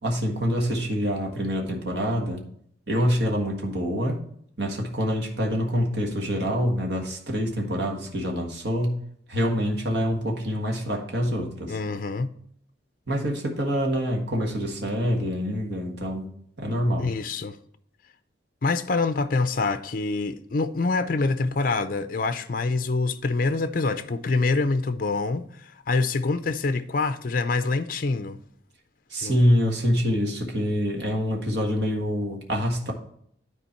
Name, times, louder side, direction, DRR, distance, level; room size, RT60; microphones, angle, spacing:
voice 1, 0.0-2.4 2.9-4.2 4.6-9.0 9.3-11.8 13.1-16.3 16.6-17.1 29.1-32.9, equal, 60° right, 1.5 m, -26 dB
voice 2, 11.7-12.3 17.0-17.6 18.6-28.4 29.2-29.4, left 3 dB, 45° left, 0.5 m, -25 dB
9.9 x 4.5 x 4.4 m
head